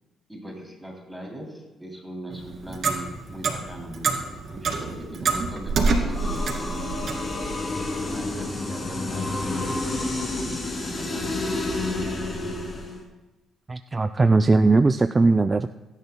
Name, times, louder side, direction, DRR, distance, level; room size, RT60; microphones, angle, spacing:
voice 1, 0.3-4.1 4.5-7.1 8.0-11.3, right 1 dB, 5° right, -1 dB, 3.0 m, -39 dB
Clock, 2.3-7.3, right 4 dB, 55° right, 2.3 m, -27 dB
sound 1, 6.1-13.0, left 2 dB, 30° left, 2.6 m, -29 dB
voice 2, 13.7-15.7, right 3 dB, 25° right, 9 dB, 0.4 m, -19 dB
22.5 x 10.5 x 2.2 m, 1.2 s
cardioid pair, 90°, 0 cm